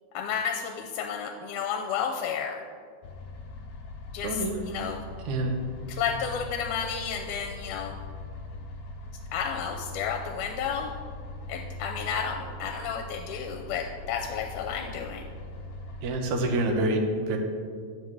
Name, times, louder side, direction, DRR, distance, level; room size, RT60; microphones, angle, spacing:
voice 1, 0.1-2.6 4.1-5.0 5.9-8.0 9.3-10.9 11.5-15.3, left 7 dB, 85° left, 4 dB, 2.1 m, -32 dB
sound 1, 3.0-16.1, left 2 dB, 70° left, 1.6 m, -41 dB
voice 2, 4.2-4.6 5.3-5.5 16.0-17.4, right 1 dB, 70° right, 3 dB, 2.2 m, -27 dB
9.3 x 7.2 x 4.8 m, 2.1 s
omnidirectional pair, 3.6 m